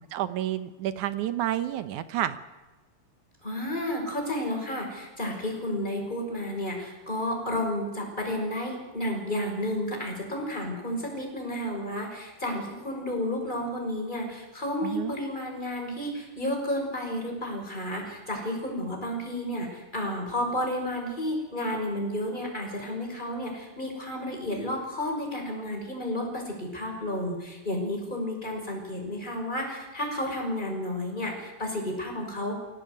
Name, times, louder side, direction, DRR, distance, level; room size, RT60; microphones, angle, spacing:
voice 1, 0.1-2.4 14.8-15.1, right 12 dB, 70° right, 12 dB, 2.1 m, -30 dB
voice 2, 3.4-32.6, left 1 dB, 10° left, 1 dB, 5.9 m, -31 dB
23.5 x 17.0 x 9.5 m, 1.2 s
omnidirectional pair, 4.1 m